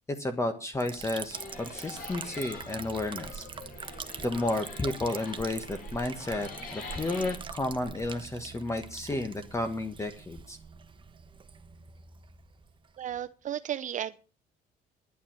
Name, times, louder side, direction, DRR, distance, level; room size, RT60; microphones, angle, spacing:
voice 1, 0.1-3.5 4.2-10.6, left 2 dB, 15° left, 7 dB, 1.3 m, -32 dB
Liquid, 0.8-13.3, right 6 dB, 30° right, 1.2 m, -44 dB
sound 1, 1.3-7.4, left 4 dB, 55° left, 4.8 m, -45 dB
voice 2, 13.0-14.2, right 10 dB, 50° right, 11 dB, 0.6 m, -34 dB
11.0 x 9.1 x 7.5 m, 0.37 s
cardioid pair, 110°, 17 cm